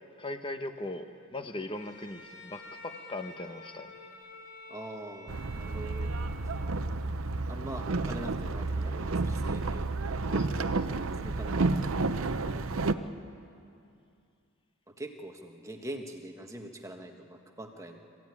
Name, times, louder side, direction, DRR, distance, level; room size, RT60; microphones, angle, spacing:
voice 1, 0.2-3.9 10.3-11.0, left 2 dB, 25° left, 7 dB, 1.0 m, -39 dB
Bowed string instrument, 1.6-6.9, left 1 dB, 50° left, 3.5 m, -49 dB
voice 2, 4.7-6.1 6.6-6.7 7.5-9.8 11.0-11.7 12.3-12.7 14.9-18.0, right 1 dB, 15° right, 3 dB, 1.4 m, -43 dB
Boat Water vehicle, 5.3-12.9, right 3 dB, 75° right, 0.7 m, -31 dB
25.5 x 15.5 x 9.7 m, 2.5 s
head